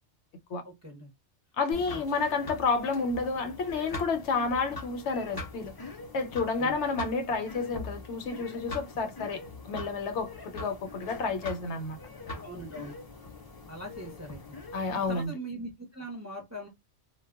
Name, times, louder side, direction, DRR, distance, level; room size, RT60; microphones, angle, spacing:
voice 1, 0.6-1.1 1.7-2.0 6.6-6.8 12.4-12.9 13.7-14.5 14.9-16.7, right 1 dB, 20° right, 0.5 m, -41 dB
voice 2, 1.6-5.7 6.1-12.0 14.7-15.3, left 4 dB, 75° left, 0.9 m, -30 dB
sound 1, 1.7-15.3, left 2 dB, 40° left, 0.3 m, -43 dB
2.2 x 2.1 x 3.4 m
omnidirectional pair, 1.2 m